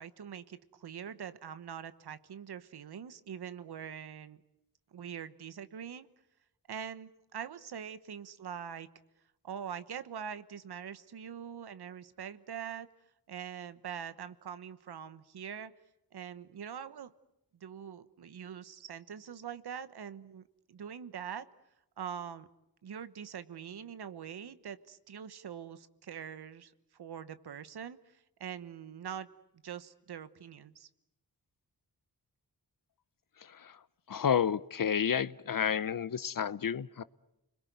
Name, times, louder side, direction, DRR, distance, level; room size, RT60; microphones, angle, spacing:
voice 1, 0.0-4.4 4.9-6.1 6.7-8.9 9.4-12.9 13.3-15.7 16.1-17.1 17.5-20.4 20.7-21.5 22.0-22.5 22.8-29.3 29.6-30.9, right 8 dB, 80° right, 13 dB, 1.2 m, -43 dB
voice 2, 34.1-37.0, left 8 dB, 55° left, 16 dB, 0.9 m, -30 dB
30.0 x 21.0 x 9.4 m, 0.89 s
cardioid pair, 60°, 38 cm